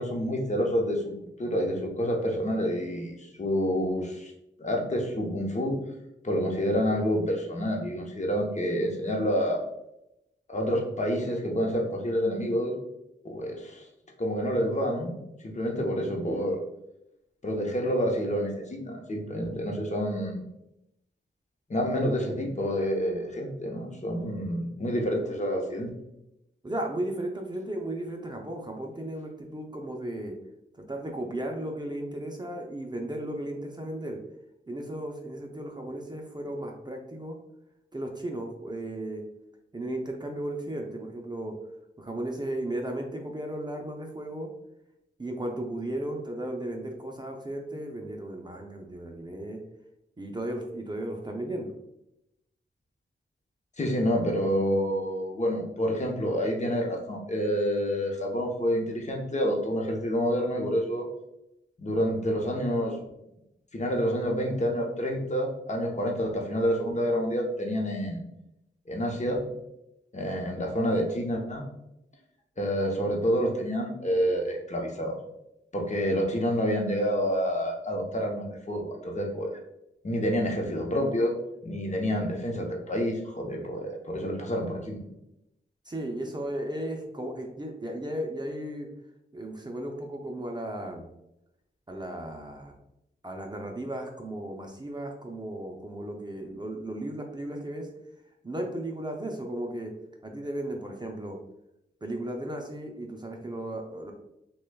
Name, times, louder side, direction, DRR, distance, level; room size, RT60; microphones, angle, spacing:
voice 1, 0.0-4.3 4.6-5.8 6.2-9.6 10.5-12.7 13.2-13.9 14.2-15.1 15.4-16.6 17.4-20.4 21.7-25.9 53.8-61.1 61.8-63.0 63.7-68.2 68.9-69.4 70.1-71.7 72.6-75.2 75.7-79.6 80.0-81.3 81.6-85.0, equal, 35° left, 0 dB, 0.8 m, -28 dB
voice 2, 26.6-30.4 30.7-34.2 34.7-37.4 37.9-39.2 39.7-41.6 42.0-44.5 45.2-49.6 50.2-51.7 85.9-88.9 89.3-91.1 91.9-92.8 93.2-97.9 98.4-99.9 100.2-101.4 102.0-104.1, right 1 dB, 20° right, 2 dB, 0.5 m, -35 dB
6.0 x 2.3 x 2.2 m, 0.85 s
cardioid pair, 70°, 20 cm